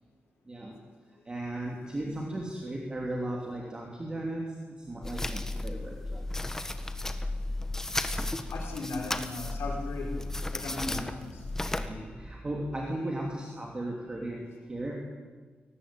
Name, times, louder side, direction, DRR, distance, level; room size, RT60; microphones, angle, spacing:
voice 1, 1.3-4.6 4.9-6.2 10.8-11.0 11.8-15.0, right 1 dB, 20° right, 0 dB, 3.0 m, -36 dB
sound 1, 5.0-11.9, left 2 dB, 10° left, 1.4 m, -34 dB
voice 2, 8.5-10.2 10.5-11.4, left 3 dB, 90° left, 0 dB, 5.7 m, -37 dB
23.0 x 18.5 x 9.0 m, 1.4 s
wide cardioid pair, 150°, 4 cm